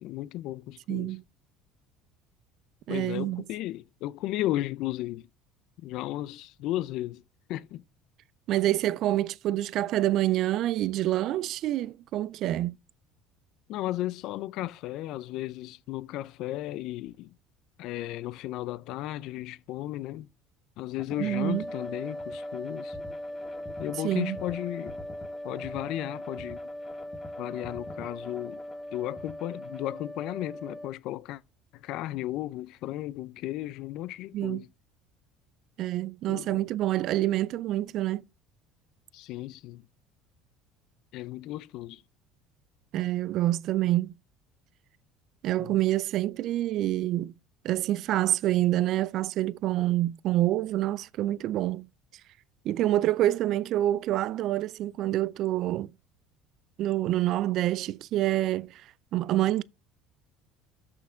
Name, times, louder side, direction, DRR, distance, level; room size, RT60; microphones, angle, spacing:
voice 1, 0.0-1.2 2.9-5.3 5.8-7.2 7.5-7.8 13.7-17.3 17.8-20.3 20.8-23.0 23.8-25.0 25.4-26.6 27.4-28.6 28.9-31.4 31.7-34.7 36.3-36.7 39.1-39.8 41.1-42.0 45.6-45.8, left 15 dB, 65° left, 0.4 m, -35 dB
voice 2, 0.9-1.2 2.9-3.4 8.5-12.8 21.2-21.6 24.0-24.4 34.3-34.6 35.8-38.2 42.9-44.1 45.4-47.3 47.6-51.9 52.7-55.9 56.8-59.6, right 14 dB, 60° right, 0.3 m, -27 dB
sound 1, 21.0-29.9, left 3 dB, 30° left, 1.6 m, -48 dB
sound 2, 21.2-30.9, left 1 dB, ahead, 0.8 m, -39 dB
6.4 x 5.8 x 4.9 m
supercardioid pair, 90°, 0 cm